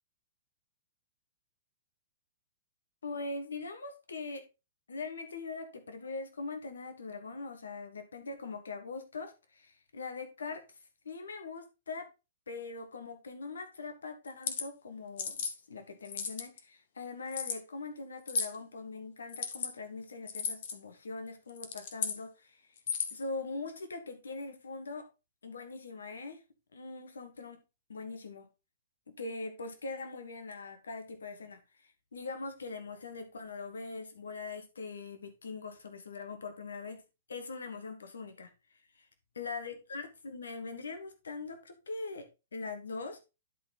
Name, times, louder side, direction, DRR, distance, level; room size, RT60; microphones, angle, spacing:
voice 1, 3.0-4.4 4.9-10.8 11.0-12.1 12.5-15.4 15.7-22.8 23.1-25.1 25.4-26.4 26.7-27.6 27.9-28.5 29.1-37.0 37.3-38.5 38.9-39.1 39.4-42.3 42.5-43.2, left 3 dB, 85° left, 7 dB, 1.5 m, -42 dB
sound 1, 14.3-14.6 15.2-15.5 16.0-16.6 17.3-17.6 18.3-18.6 19.3-19.7 20.3-20.7 21.5-22.2 22.8-23.2, left 6 dB, 60° left, 1.4 m, -34 dB
11.0 x 4.2 x 4.0 m, 0.28 s
hypercardioid pair, 120°, 0 cm